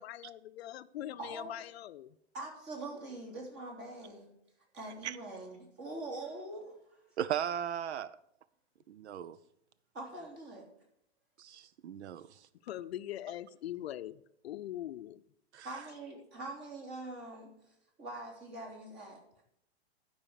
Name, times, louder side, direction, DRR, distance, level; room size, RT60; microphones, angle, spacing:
voice 1, 0.0-2.2 12.6-15.2, left 12 dB, 70° left, 0.6 m, -42 dB
voice 2, 1.2-1.6 2.3-4.3 4.7-7.0 9.9-10.7 15.6-19.2, right 2 dB, 30° right, 3.3 m, -44 dB
voice 3, 7.2-8.2 8.9-9.4 11.4-12.5 15.5-15.7, right 9 dB, 85° right, 0.6 m, -37 dB
12.0 x 5.6 x 6.5 m
hypercardioid pair, 135°, 33 cm